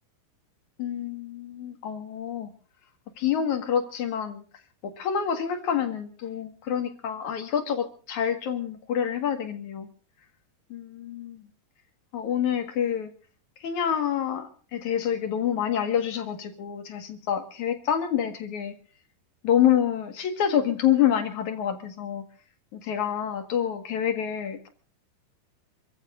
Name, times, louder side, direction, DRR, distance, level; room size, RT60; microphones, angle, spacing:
voice 1, 0.8-2.5 3.2-4.4 4.8-9.9 10.7-11.5 12.1-13.1 13.6-18.7 19.4-22.2 22.7-24.7, left 9 dB, 55° left, 5 dB, 2.5 m, -27 dB
27.5 x 15.0 x 2.6 m, 0.43 s
omnidirectional pair, 5.2 m